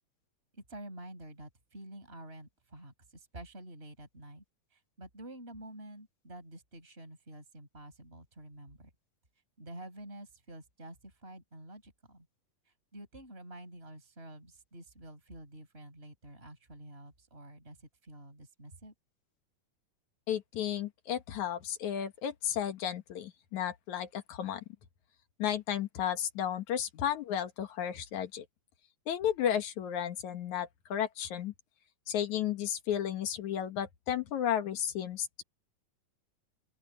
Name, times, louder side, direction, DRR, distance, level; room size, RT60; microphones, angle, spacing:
voice 1, 0.5-4.4 4.7-8.9 9.6-12.3 12.7-18.9, right 1 dB, 15° right, 6.5 m, -49 dB
voice 2, 20.3-24.6 25.4-28.5 29.1-31.5 32.1-35.4, left 10 dB, 65° left, 2.6 m, -33 dB
open air
omnidirectional pair, 3.8 m